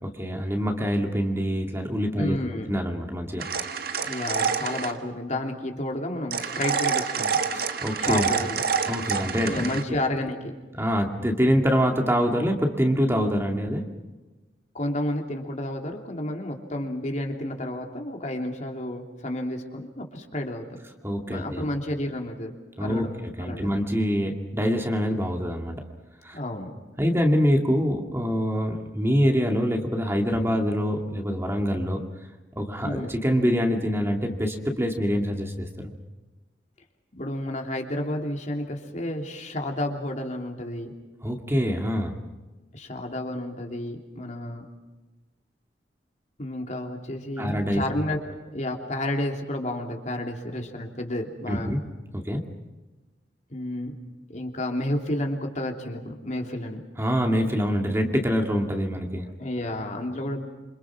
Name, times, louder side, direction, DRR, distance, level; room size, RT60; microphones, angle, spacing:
voice 1, 0.0-2.4 2.7-3.5 7.5-8.3 8.9-9.7 10.8-13.9 21.0-21.6 22.8-25.8 26.2-26.4 27.0-32.1 32.6-35.9 41.2-42.1 47.4-47.8 51.5-51.8 52.1-52.4 57.0-59.3, equal, 15° right, 3 dB, 2.3 m, -25 dB
voice 2, 2.2-2.7 4.0-7.4 8.0-8.7 9.5-10.5 14.7-20.8 21.3-22.5 22.8-23.7 26.3-26.7 32.8-33.1 37.2-40.9 42.7-44.7 46.4-51.7 53.5-53.9 54.3-56.8 59.4-60.4, left 1 dB, 45° left, 2 dB, 3.1 m, -31 dB
sound 1, 3.4-5.0 6.3-9.8, right 6 dB, 60° right, 1.6 m, -27 dB
27.5 x 26.0 x 6.1 m, 1.2 s
head